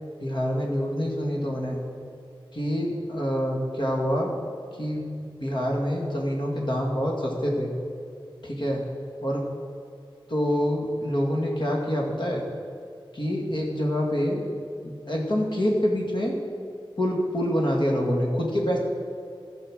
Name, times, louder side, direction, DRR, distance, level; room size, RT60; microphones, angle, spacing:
voice 1, 0.2-1.8 2.5-4.3 4.8-7.7 8.4-8.8 9.2-9.5 10.3-12.4 13.1-14.4 14.8-16.3 17.0-18.8, equal, 60° left, -1 dB, 2.3 m, -26 dB
15.5 x 5.8 x 6.3 m, 2.4 s
wide cardioid pair, 50°, 9 cm